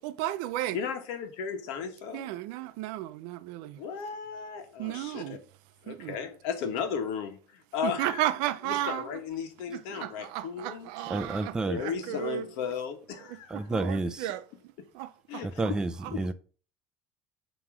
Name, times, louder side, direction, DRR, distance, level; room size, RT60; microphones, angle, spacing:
voice 1, 0.0-0.8 2.1-3.8 4.8-5.4 5.9-6.2 7.8-9.1 9.7-12.5 13.3-14.4 14.9-15.4 16.0-16.1, right 14 dB, 75° right, 0.5 m, -34 dB
voice 2, 0.7-2.3 3.8-5.4 5.8-8.2 8.6-10.9 11.7-13.6 15.3-15.8 16.1-16.3, left 6 dB, 75° left, 1.4 m, -35 dB
voice 3, 11.1-11.8 13.5-14.3 15.4-16.3, right 2 dB, 10° right, 0.4 m, -30 dB
7.3 x 3.1 x 6.1 m
cardioid pair, 150°, 8 cm